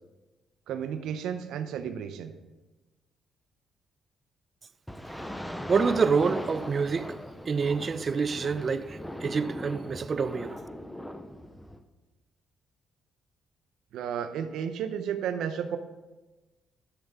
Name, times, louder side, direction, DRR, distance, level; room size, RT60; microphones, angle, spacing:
voice 1, 0.7-2.3 13.9-15.8, right 8 dB, 80° right, 0.7 m, -32 dB
sound 1, 4.9-11.8, equal, 5° left, 0.7 m, -39 dB
voice 2, 5.7-7.2 7.5-10.6, right 5 dB, 40° right, 0.5 m, -27 dB
11.5 x 6.8 x 3.7 m
cardioid pair, 90°, 0 cm